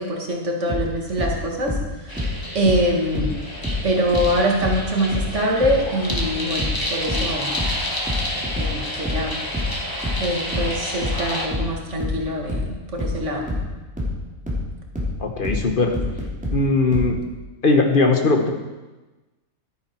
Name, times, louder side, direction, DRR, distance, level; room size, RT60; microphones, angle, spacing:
voice 1, 0.0-1.7 2.0-3.4 3.8-7.5 8.5-9.3 10.2-13.4, equal, 60° right, 0 dB, 2.1 m, -24 dB
sound 1, 0.7-3.9 4.1-17.2, left 2 dB, 5° right, 2.8 m, -27 dB
sound 2, 2.1-11.5, left 1 dB, 15° left, 1.5 m, -30 dB
voice 2, 15.2-15.9 16.5-17.2 17.6-18.5, left 3 dB, 40° left, 4 dB, 1.3 m, -19 dB
11.5 x 10.0 x 4.4 m, 1.1 s
omnidirectional pair, 1.4 m